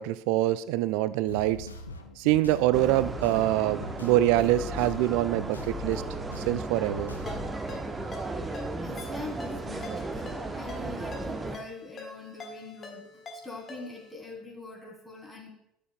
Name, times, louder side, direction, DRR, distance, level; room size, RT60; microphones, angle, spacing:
voice 1, 0.0-1.7 2.2-6.0 6.4-7.1, right 15 dB, 60° right, 17 dB, 0.3 m, -25 dB
sound 1, 1.3-7.5, left 2 dB, 85° left, 0.5 m, -41 dB
sound 2, 2.7-11.6, right 2 dB, 20° right, 0.8 m, -36 dB
Ringtone, 7.3-14.1, left 2 dB, 35° left, 1.6 m, -45 dB
voice 2, 8.5-15.5, left 2 dB, 10° left, -2 dB, 2.8 m, -43 dB
12.0 x 6.7 x 2.2 m, 0.76 s
figure-of-eight pair, 65°, 0 cm